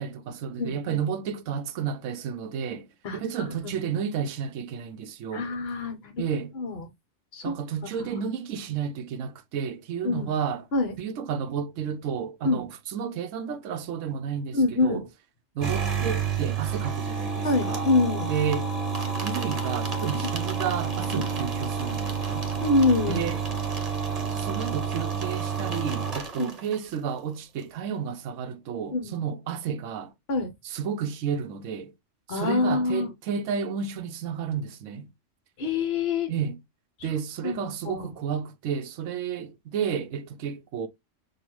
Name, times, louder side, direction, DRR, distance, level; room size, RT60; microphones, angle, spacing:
voice 1, 0.0-5.5 6.2-6.5 7.4-10.7 11.0-15.0 15.5-17.9 18.3-18.7 19.2-22.5 23.1-23.4 24.3-30.1 30.6-31.9 32.3-35.1 36.3-36.6 37.0-40.9, right 7 dB, 85° right, 1.0 m, -31 dB
voice 2, 0.6-1.0 3.0-3.2 3.6-3.7 5.3-6.2 6.5-6.9 7.3-7.5 8.0-8.1 10.0-10.3 10.7-10.9 12.4-12.6 14.5-15.1 17.4-18.3 20.2-20.3 21.1-21.3 22.6-23.3 26.4-26.5 28.9-29.2 30.3-30.5 32.3-33.1 35.6-36.3 37.0-37.1 37.4-38.1, left 3 dB, 55° left, 1.2 m, -26 dB
sound 1, 15.6-27.0, right 6 dB, 35° right, 0.9 m, -29 dB
6.6 x 2.4 x 3.0 m
omnidirectional pair, 1.3 m